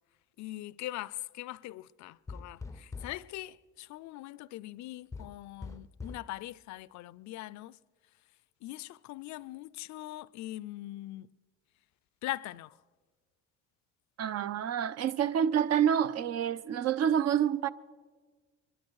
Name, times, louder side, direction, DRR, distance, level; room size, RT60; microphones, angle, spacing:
voice 1, 0.4-7.8 8.6-11.3 12.2-12.8, left 16 dB, 65° left, 0.4 m, -41 dB
sound 1, 2.3-3.3 5.1-6.3, left 4 dB, 10° left, 0.5 m, -43 dB
voice 2, 14.2-17.7, right 9 dB, 55° right, 0.6 m, -28 dB
24.5 x 12.0 x 4.7 m
supercardioid pair, 80°, 30 cm